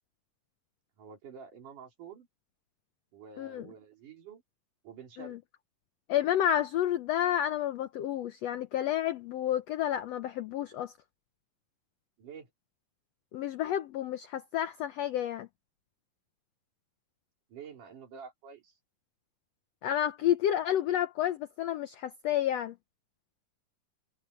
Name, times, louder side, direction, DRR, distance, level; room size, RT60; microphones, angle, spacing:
voice 1, 1.0-2.3 3.1-4.4 4.8-5.4 12.2-12.5 17.5-18.8, right 6 dB, 65° right, 4.9 m, -48 dB
voice 2, 6.1-10.9 13.3-15.5 19.8-22.7, left 11 dB, 85° left, 1.4 m, -30 dB
omnidirectional pair, 3.9 m